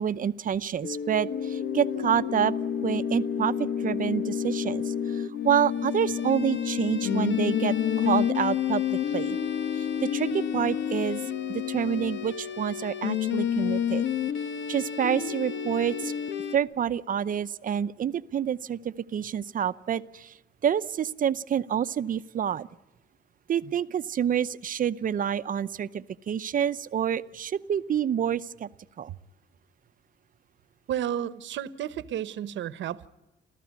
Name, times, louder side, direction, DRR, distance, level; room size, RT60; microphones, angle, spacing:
voice 1, 0.0-2.5 2.8-9.4 9.7-11.2 11.5-14.0 14.7-16.1 16.5-20.3 20.6-22.7 23.5-28.7 29.0-29.1, right 9 dB, 45° right, 0.7 m, -28 dB
sound 1, 0.8-16.6, left 8 dB, 80° left, 1.3 m, -29 dB
voice 2, 30.9-33.1, right 10 dB, 80° right, 1.0 m, -32 dB
28.5 x 14.0 x 9.4 m
cardioid pair, 140°, 19 cm